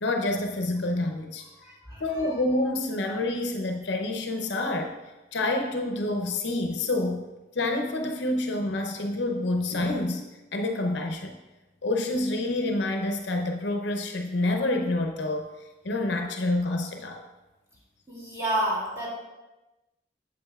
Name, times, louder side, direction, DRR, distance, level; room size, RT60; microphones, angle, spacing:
voice 1, 0.0-1.4 2.0-4.9 5.3-7.2 7.5-10.2 10.5-11.4 11.8-15.5 15.8-17.2, left 2 dB, 60° left, 4 dB, 0.7 m, -28 dB
voice 2, 1.6-2.3 18.1-19.1, right 1 dB, 15° right, -6 dB, 2.5 m, -30 dB
8.7 x 7.6 x 2.4 m, 1.1 s
head